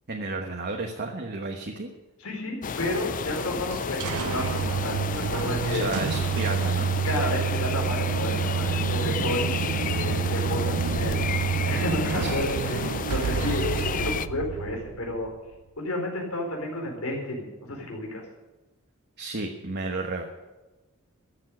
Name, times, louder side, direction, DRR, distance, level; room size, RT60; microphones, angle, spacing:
voice 1, 0.1-1.9 5.7-6.9 12.2-12.5 19.2-20.3, right 3 dB, 50° right, 2 dB, 1.2 m, -32 dB
voice 2, 2.2-5.9 7.0-11.1 11.6-15.3 15.8-18.3, left 1 dB, 90° left, 0 dB, 4.4 m, -31 dB
sound 1, 2.6-14.3, left 6 dB, 40° left, 0.4 m, -31 dB
sound 2, 3.7-15.4, right 8 dB, 90° right, 0.3 m, -28 dB
14.0 x 7.3 x 10.0 m, 1.1 s
head